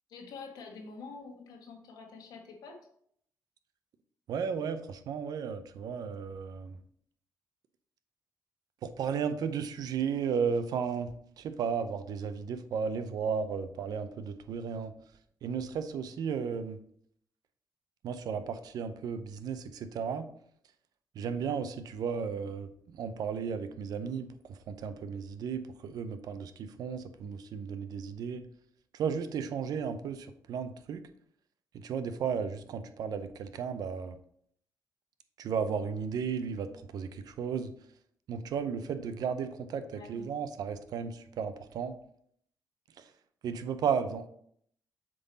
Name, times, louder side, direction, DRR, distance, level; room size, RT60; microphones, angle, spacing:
voice 1, 0.1-2.8 39.9-40.1, left 4 dB, 85° left, 2 dB, 1.4 m, -46 dB
voice 2, 4.3-6.8 8.8-14.9 15.4-16.8 18.0-20.3 21.1-28.5 28.9-31.0 31.7-34.2 35.4-37.7 38.3-42.0 43.0-43.1 43.4-44.3, right 6 dB, 75° right, 10 dB, 0.6 m, -34 dB
7.6 x 3.9 x 4.0 m, 0.67 s
cardioid pair, 95°, 7 cm